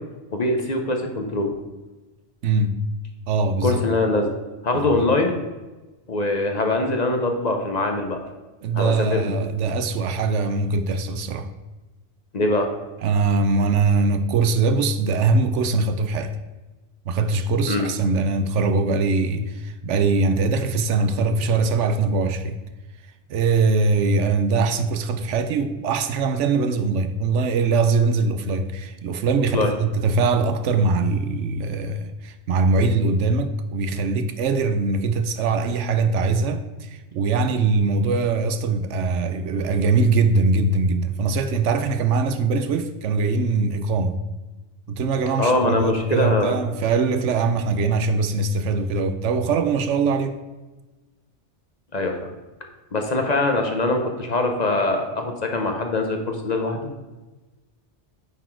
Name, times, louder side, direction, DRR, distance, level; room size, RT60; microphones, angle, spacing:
voice 1, 0.3-1.5 3.6-4.4 4.6-5.4 6.1-8.2 8.7-9.3 12.3-12.7 17.7-17.9 29.5-29.7 45.4-46.6 51.9-52.3 52.9-56.9, left 2 dB, 40° left, 0.9 m, -23 dB
voice 2, 2.4-2.7 3.3-3.8 4.7-5.1 8.6-11.5 13.0-16.4 17.1-22.6 23.3-44.2 44.9-50.4, right 4 dB, 85° right, 1.0 m, -22 dB
9.1 x 4.2 x 4.5 m
omnidirectional pair, 1.2 m